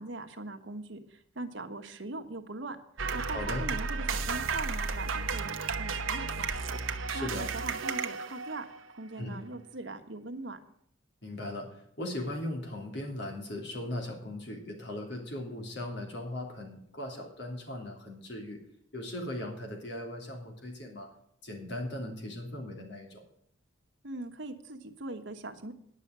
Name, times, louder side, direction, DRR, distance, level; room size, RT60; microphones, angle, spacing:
voice 1, 0.0-2.8 3.1-6.7 7.1-10.6 24.0-25.7, right 2 dB, 65° right, 6 dB, 1.3 m, -41 dB
sound 1, 3.0-8.9, right 4 dB, 85° right, 0.9 m, -33 dB
voice 2, 3.2-3.6 7.1-7.5 9.2-9.4 11.2-18.6 18.9-21.1 21.4-23.2, left 1 dB, 60° left, 2 dB, 3.2 m, -38 dB
10.5 x 6.8 x 8.8 m, 0.69 s
head